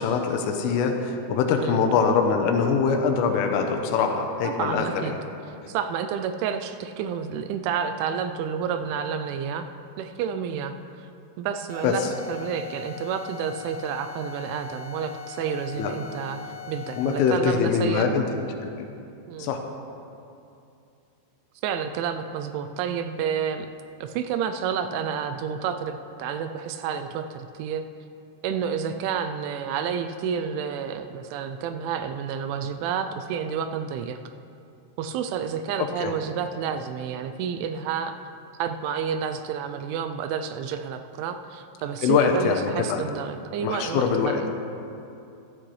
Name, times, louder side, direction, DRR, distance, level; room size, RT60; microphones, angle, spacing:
voice 1, 0.0-5.2 11.8-12.1 15.8-15.9 17.0-18.9 19.4-19.6 35.8-36.1 42.0-43.0 43.6-44.4, left 6 dB, 85° left, 4 dB, 3.4 m, -23 dB
voice 2, 4.4-5.1 5.5-9.7 10.0-11.1 11.4-18.2 19.3-19.5 21.6-23.7 24.0-27.9 28.4-34.2 35.0-38.2 38.6-44.5, right 7 dB, 85° right, 8 dB, 2.8 m, -30 dB
sound 1, 11.7-17.6, left 7 dB, 35° right, 0.7 m, -41 dB
15.0 x 13.0 x 3.2 m, 2.6 s
omnidirectional pair, 5.7 m